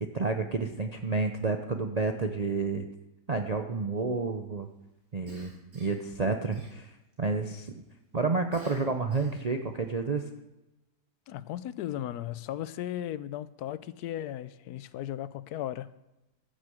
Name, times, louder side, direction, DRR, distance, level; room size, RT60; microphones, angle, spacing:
voice 1, 0.0-2.9 3.3-4.7 5.1-6.9 7.2-7.7 8.1-10.2, right 4 dB, 75° right, 0.3 m, -30 dB
Cough, 5.3-6.1 6.5-7.1 8.5-9.5, equal, 55° right, 4.0 m, -53 dB
voice 2, 11.3-15.9, left 12 dB, 75° left, 1.1 m, -36 dB
14.0 x 6.6 x 7.8 m
omnidirectional pair, 1.8 m